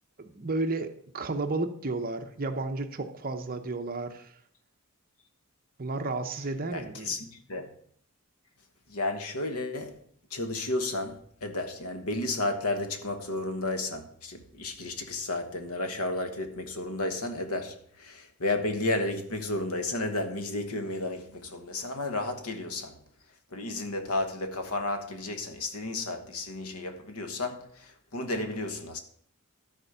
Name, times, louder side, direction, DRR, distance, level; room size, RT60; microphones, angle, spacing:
voice 1, 0.2-4.3 5.8-7.2, right 3 dB, 40° right, 0.9 m, -32 dB
voice 2, 6.7-7.7 8.9-10.0 10.3-22.9 23.5-29.0, left 2 dB, 85° left, 1.3 m, -32 dB
13.0 x 4.4 x 6.7 m
head